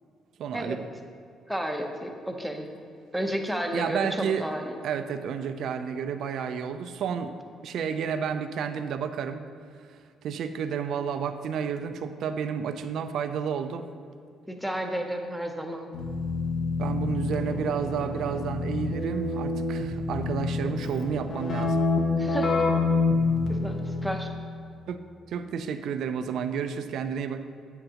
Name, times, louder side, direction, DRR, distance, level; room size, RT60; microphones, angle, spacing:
voice 1, 0.4-0.9 3.7-4.4 4.8-7.3 7.6-9.4 10.2-13.9 16.8-21.8 24.9-25.0 25.3-27.4, right 7 dB, 65° right, 9 dB, 0.4 m, -31 dB
voice 2, 1.5-2.7 3.1-4.8 14.5-15.9 22.2-22.6 23.5-24.3, equal, ahead, 3 dB, 0.7 m, -32 dB
Keyboard (musical), 15.9-24.4, left 3 dB, 70° left, 0.9 m, -27 dB
8.8 x 7.8 x 2.9 m, 2.4 s
cardioid pair, 120°, 0 cm